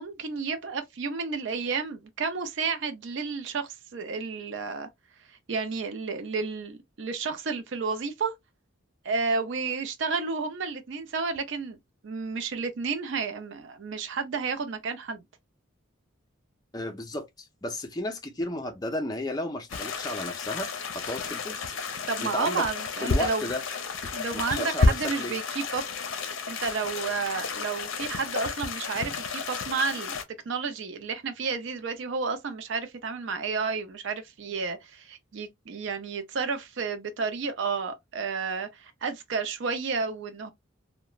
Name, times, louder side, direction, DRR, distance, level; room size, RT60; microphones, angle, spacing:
voice 1, 0.0-4.9 5.5-8.3 9.0-11.8 12.0-15.2 22.1-23.5 24.1-25.8 26.5-30.2 30.5-40.5, right 4 dB, 60° right, 0.4 m, -31 dB
voice 2, 16.7-20.7 20.9-21.6 22.2-22.7 23.0-23.6 24.5-25.4, left 1 dB, 20° left, 0.4 m, -33 dB
sound 1, 19.7-30.2, left 4 dB, 70° left, 0.5 m, -31 dB
2.9 x 2.1 x 2.3 m
head